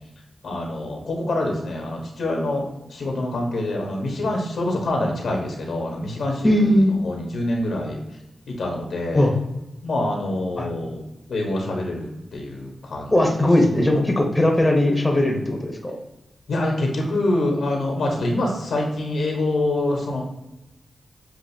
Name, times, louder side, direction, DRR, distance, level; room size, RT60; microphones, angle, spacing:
voice 1, 0.4-2.6 2.9-8.0 8.5-9.3 9.8-11.0 11.3-13.5 16.5-20.2, left 1 dB, 85° left, 0 dB, 1.2 m, -25 dB
voice 2, 6.4-6.9 9.1-9.3 10.6-10.7 13.1-16.0, left 1 dB, 20° left, 2 dB, 0.9 m, -19 dB
7.3 x 2.6 x 2.7 m, 0.94 s
cardioid pair, 70°, 0 cm